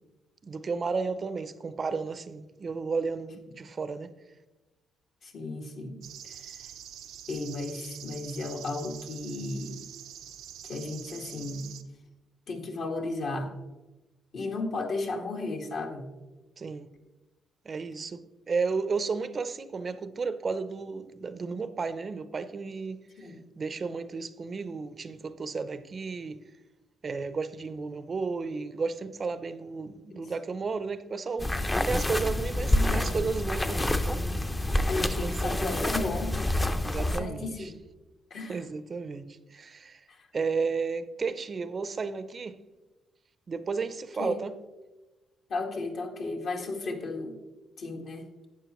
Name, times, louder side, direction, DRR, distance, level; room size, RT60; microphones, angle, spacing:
voice 1, 0.4-4.1 16.6-16.9 17.6-23.0 23.6-26.4 27.0-31.5 31.8-34.4 35.0-35.8 36.8-37.7 38.5-40.0 40.3-42.5 43.5-44.5, right 4 dB, 40° right, 0.6 m, -33 dB
voice 2, 5.2-6.0 6.3-6.4 7.3-9.8 10.6-11.7 12.5-13.5 14.3-16.1 23.2-23.4 30.1-30.3 32.7-33.2 34.9-36.5 37.0-37.8 38.3-38.6 44.2-44.4 45.5-47.4 47.8-48.3, left 3 dB, 60° left, 1.7 m, -34 dB
sound 1, 6.0-11.8, right 10 dB, 85° right, 0.6 m, -45 dB
sound 2, 31.4-37.2, left 1 dB, 15° left, 0.6 m, -27 dB
12.0 x 8.6 x 3.0 m
cardioid pair, 90°, 0 cm